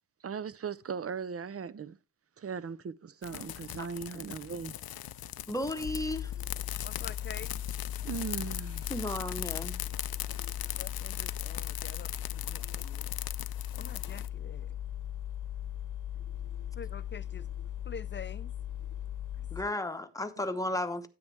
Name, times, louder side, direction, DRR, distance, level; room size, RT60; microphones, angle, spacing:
voice 1, 0.2-2.0 2.4-4.8 8.0-8.9, right 6 dB, 40° right, 0.5 m, -38 dB
sound 1, 3.2-14.3, left 12 dB, 90° left, 0.5 m, -40 dB
voice 2, 5.5-6.3 8.9-9.8 19.5-21.1, left 1 dB, 10° left, 0.9 m, -34 dB
sound 2, 5.9-19.6, left 11 dB, 60° left, 0.9 m, -38 dB
voice 3, 6.8-7.5 10.8-13.1 13.8-14.8 16.8-17.5 17.8-18.5 19.4-19.5, left 5 dB, 30° left, 0.6 m, -46 dB
9.6 x 8.7 x 3.3 m
wide cardioid pair, 80°, 35 cm